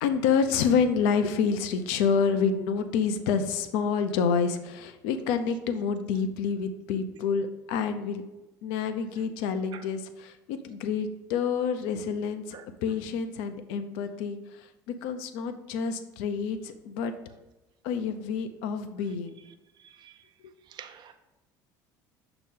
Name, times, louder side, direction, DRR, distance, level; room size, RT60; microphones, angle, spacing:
voice 1, 0.0-8.2 8.6-17.1 17.8-19.4 20.4-20.5, left 6 dB, 75° left, 9 dB, 0.5 m, -28 dB
voice 2, 20.7-21.2, right 9 dB, 50° right, 8 dB, 0.5 m, -45 dB
6.4 x 2.9 x 5.3 m, 1.0 s
hypercardioid pair, 75°, 10 cm